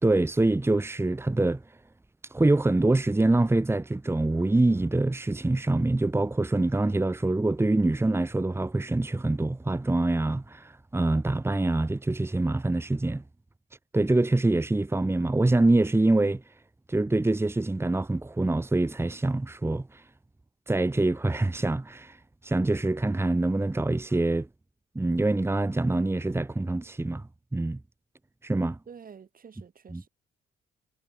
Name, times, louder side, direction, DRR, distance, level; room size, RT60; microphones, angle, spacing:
voice 1, 0.0-1.6 2.3-13.2 13.9-16.4 16.9-20.0 20.7-22.2 22.4-24.5 24.9-27.2 27.5-27.8 28.4-28.8 29.9-30.0, right 2 dB, 10° right, 1.6 m, -25 dB
voice 2, 28.9-30.1, right 6 dB, 45° right, 6.8 m, -48 dB
cardioid pair, 90°, 20 cm